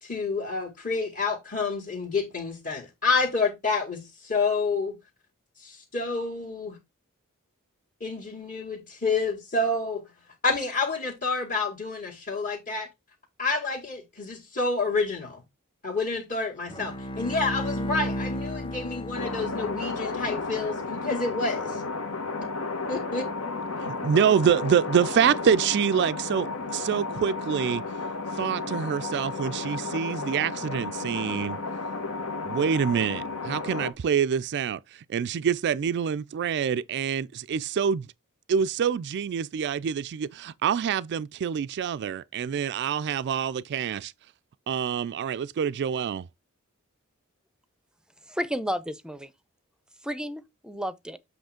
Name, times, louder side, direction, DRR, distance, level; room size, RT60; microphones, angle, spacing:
voice 1, 0.0-5.0 5.6-6.8 8.0-10.0 10.4-12.9 13.4-15.4 15.8-21.8 22.9-23.3, left 3 dB, 40° left, 2.0 m, -29 dB
Bowed string instrument, 16.7-20.2, equal, 20° left, 1.0 m, -33 dB
sound 1, 19.1-33.9, left 3 dB, 75° left, 1.3 m, -33 dB
voice 2, 23.8-27.8 28.4-31.6 32.5-38.1 38.5-44.1 44.7-46.3, right 7 dB, 55° right, 0.3 m, -26 dB
voice 3, 48.3-49.3 50.0-51.2, equal, 5° right, 0.6 m, -32 dB
7.8 x 3.2 x 5.0 m
head